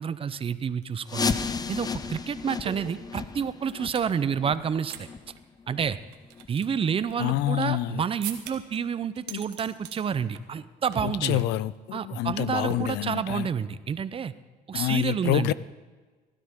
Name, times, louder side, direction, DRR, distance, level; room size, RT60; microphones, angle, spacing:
voice 1, 0.0-1.4 1.7-5.1 5.7-6.0 6.5-11.4 11.9-14.3 14.7-15.5, right 7 dB, 35° right, 0.6 m, -29 dB
sound 1, 0.8-0.9 1.1-4.1 4.5-5.0 5.3-5.4 5.9-7.8 8.2-8.8 9.1-10.0 10.3-10.6 10.9-11.2 11.5-11.7 12.7-13.4, right 11 dB, 90° right, 1.3 m, -42 dB
sound 2, 1.1-6.6 7.0-7.1 7.6-7.7 8.4-8.5 9.0-9.1, left 5 dB, 25° left, 0.6 m, -34 dB
voice 2, 7.2-8.0 9.3-9.4 11.0-13.5 14.7-15.5, left 15 dB, 85° left, 0.5 m, -27 dB
16.5 x 12.5 x 3.7 m
cardioid pair, 110°, 17 cm